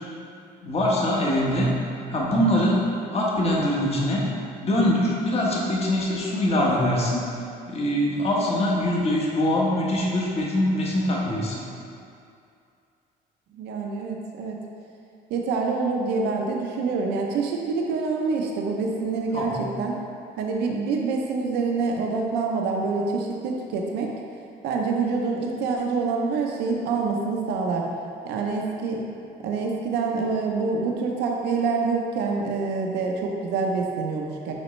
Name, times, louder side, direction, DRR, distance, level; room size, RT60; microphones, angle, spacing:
voice 1, 0.6-1.7 2.1-4.3 4.6-7.3 7.7-11.7 19.3-19.6, left 1 dB, 35° left, -4 dB, 1.1 m, -23 dB
voice 2, 13.5-14.6 15.3-20.0 20.4-24.1 24.6-27.9 28.2-29.0 29.4-34.5, right 4 dB, 85° right, 0 dB, 0.6 m, -26 dB
6.3 x 4.9 x 3.1 m, 2.5 s
cardioid pair, 110°, 17 cm